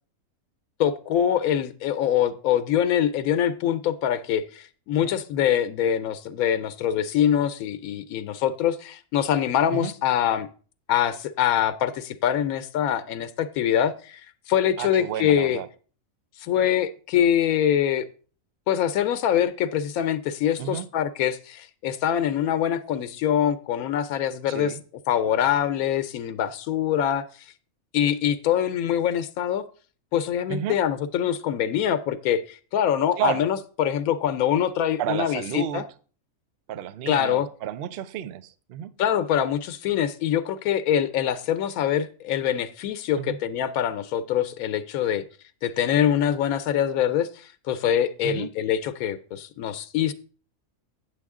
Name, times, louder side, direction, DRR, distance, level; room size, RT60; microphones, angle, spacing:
voice 1, 0.8-10.5 10.9-14.2 14.5-15.6 16.4-18.0 18.7-24.8 25.1-27.2 27.9-29.6 30.1-35.9 37.1-37.5 39.0-45.2 45.6-50.1, left 10 dB, 85° left, 11 dB, 1.1 m, -24 dB
voice 2, 14.8-15.7 20.6-20.9 24.5-24.8 30.5-30.8 33.2-33.4 35.0-35.8 36.7-38.9 43.2-43.4 48.2-48.5, right 11 dB, 60° right, 14 dB, 0.7 m, -31 dB
8.7 x 7.5 x 3.6 m, 0.40 s
omnidirectional pair, 1.5 m